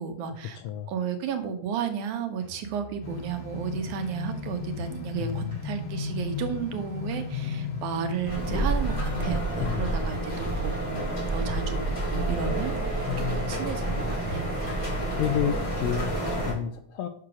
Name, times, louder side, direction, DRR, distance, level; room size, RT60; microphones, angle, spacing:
voice 1, 0.0-0.6 0.9-14.9, right 7 dB, 90° right, 6 dB, 2.5 m, -33 dB
voice 2, 0.5-0.9 5.2-5.6 7.3-7.8 9.6-9.9 13.1-13.5 15.1-17.1, left 10 dB, 80° left, 7 dB, 1.5 m, -31 dB
Musical instrument, 2.4-9.1, equal, 25° right, 4.1 m, -49 dB
sound 1, 3.0-9.5, left 3 dB, 55° left, 2.5 m, -35 dB
sound 2, 8.2-16.5, right 1 dB, 15° left, 3.9 m, -29 dB
7.2 x 6.0 x 6.3 m, 0.63 s
omnidirectional pair, 3.4 m